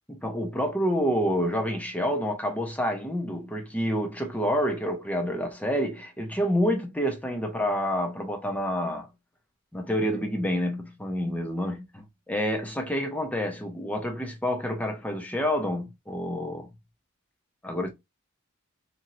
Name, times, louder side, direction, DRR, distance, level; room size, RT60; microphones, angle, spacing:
voice 1, 0.1-9.1 9.7-16.7 17.6-17.9, equal, 5° left, 0.6 m, -28 dB
2.9 x 2.6 x 2.6 m
head